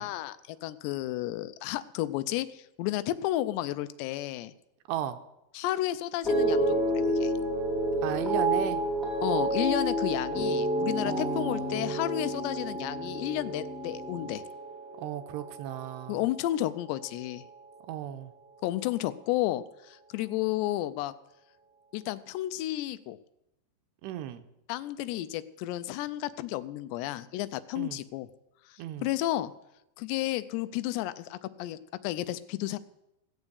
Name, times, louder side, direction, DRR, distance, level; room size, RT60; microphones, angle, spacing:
voice 1, 0.0-4.5 5.5-7.3 9.2-14.4 16.1-17.4 18.6-21.1 21.9-23.2 24.7-28.3 28.7-29.5 30.0-32.8, left 15 dB, 85° left, 15 dB, 2.8 m, -32 dB
sound 1, 6.2-16.6 16.9-17.5, right 1 dB, ahead, 1.9 m, -30 dB
voice 2, 8.0-8.8 11.1-12.0 15.0-16.2 17.9-18.3 24.0-24.4 27.8-28.0 28.8-29.1, right 11 dB, 90° right, 9 dB, 2.9 m, -35 dB
17.0 x 7.1 x 8.3 m, 0.87 s
omnidirectional pair, 4.9 m